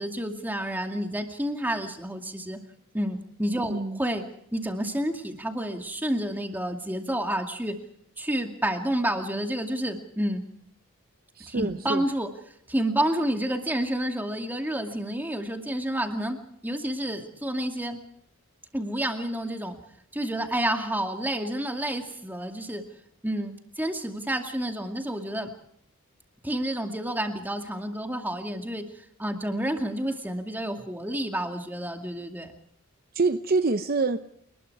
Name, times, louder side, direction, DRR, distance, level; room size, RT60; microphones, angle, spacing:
voice 1, 0.0-2.6 2.9-4.2 4.5-7.8 8.2-10.5 11.5-12.3 12.7-16.4 16.6-18.0 18.7-19.8 20.1-22.8 23.2-25.5 26.4-28.9 29.2-32.5, right 1 dB, 10° right, 4 dB, 2.3 m, -29 dB
voice 2, 11.4-12.0 33.1-34.2, right 3 dB, 45° right, 10 dB, 0.8 m, -25 dB
29.0 x 20.5 x 4.8 m, 0.71 s
head